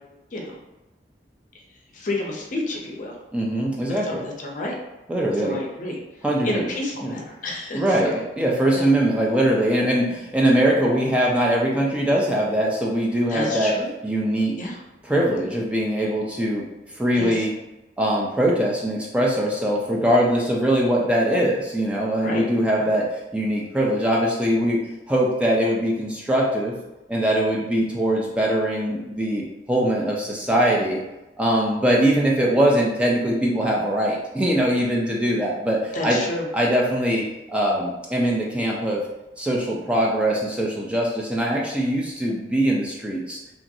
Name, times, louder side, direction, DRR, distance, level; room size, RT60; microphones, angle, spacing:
voice 1, 1.9-3.2 3.9-4.8 5.3-6.0 6.4-8.1 8.7-8.9 13.3-13.9 14.6-14.8 17.1-17.4 22.2-22.4 35.9-36.5, left 2 dB, 45° left, -1 dB, 0.6 m, -30 dB
voice 2, 3.3-4.2 5.1-5.6 6.2-6.6 7.0-7.1 7.7-13.7 14.0-14.6 15.0-16.7 16.9-17.5 18.0-23.1 23.3-24.8 25.1-26.7 27.1-31.0 31.4-36.2 36.5-39.0 39.4-43.4, right 1 dB, 5° right, -3 dB, 0.3 m, -22 dB
2.9 x 2.5 x 2.6 m, 1.0 s
head